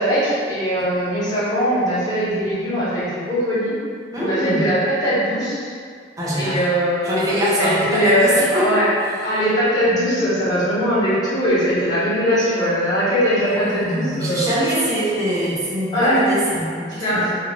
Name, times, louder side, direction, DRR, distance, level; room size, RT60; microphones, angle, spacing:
voice 1, 0.0-3.7 4.1-5.7 6.4-8.9 9.2-14.6 15.9-16.2 17.0-17.3, equal, 20° left, -13 dB, 1.1 m, -20 dB
voice 2, 4.1-4.6 6.2-6.6 7.0-9.2 13.5-17.4, equal, 20° right, -8 dB, 0.6 m, -23 dB
2.6 x 2.3 x 2.9 m, 2.1 s
head